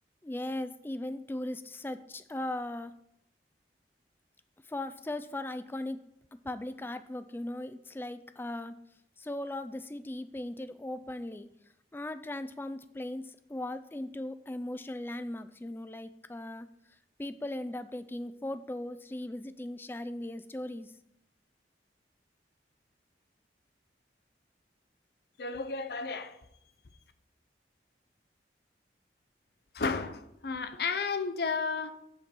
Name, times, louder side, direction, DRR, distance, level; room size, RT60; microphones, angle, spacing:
voice 1, 0.2-2.9 4.7-6.0 6.4-8.8 9.2-11.5 11.9-16.7 17.2-20.9, left 1 dB, 10° left, 11 dB, 0.3 m, -38 dB
voice 2, 25.4-26.4 29.7-31.9, left 4 dB, 60° left, 10 dB, 0.6 m, -32 dB
8.5 x 4.4 x 6.8 m, 0.81 s
head